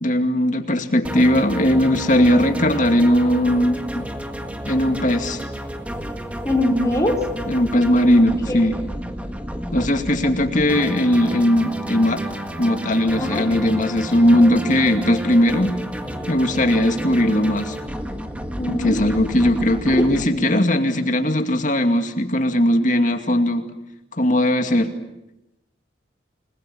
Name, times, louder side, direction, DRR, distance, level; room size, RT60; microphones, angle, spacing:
voice 1, 0.0-4.1 4.6-5.4 7.5-8.7 9.7-12.2 12.6-15.8 16.3-17.7 18.7-23.6 24.2-24.9, left 1 dB, 40° left, 6 dB, 2.4 m, -18 dB
sound 1, 1.0-20.2, equal, 5° right, 1.7 m, -31 dB
voice 2, 6.4-7.2 8.5-8.6 13.2-13.5 16.1-16.2 18.6-19.0 19.9-20.0 20.3-20.5, left 1 dB, 15° left, 0 dB, 4.0 m, -22 dB
29.0 x 21.0 x 8.7 m, 0.92 s
head